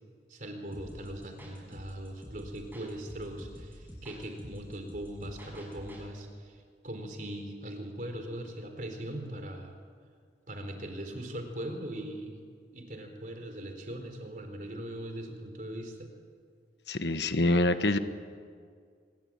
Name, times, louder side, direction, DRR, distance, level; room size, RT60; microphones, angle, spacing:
voice 1, 0.3-9.7 10.5-12.4 12.7-16.1, right 1 dB, 50° right, 5 dB, 4.1 m, -40 dB
sound 1, 0.7-6.0, equal, 10° right, 6.3 m, -48 dB
voice 2, 16.9-18.0, left 2 dB, 80° left, 10 dB, 1.4 m, -25 dB
25.5 x 22.0 x 8.9 m, 2.1 s
head